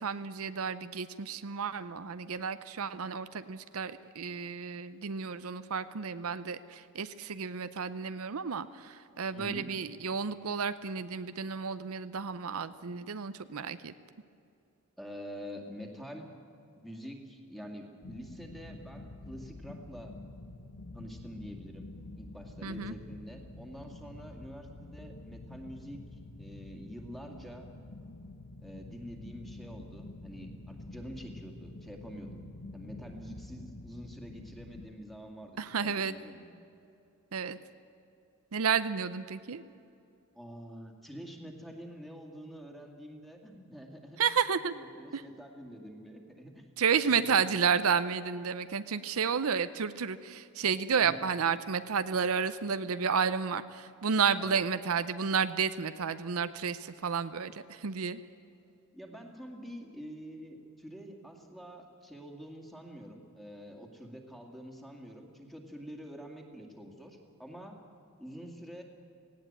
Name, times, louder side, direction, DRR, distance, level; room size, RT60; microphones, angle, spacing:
voice 1, 0.0-13.9 22.6-22.9 35.6-36.1 37.3-37.6 38.5-39.6 44.2-44.7 45.1-45.2 46.8-58.2, right 6 dB, 70° right, 13 dB, 0.6 m, -31 dB
voice 2, 9.3-9.7 15.0-16.3 16.8-20.1 20.9-21.9 22.2-27.7 28.6-32.4 32.7-36.5 40.3-44.2 44.7-46.7 47.1-47.4 51.0-51.2 54.4-54.6 58.9-67.8 68.2-68.8, equal, ahead, 3 dB, 2.2 m, -46 dB
sound 1, 18.0-34.9, left 2 dB, 85° left, 1.2 m, -47 dB
18.0 x 17.0 x 8.9 m, 2.6 s
head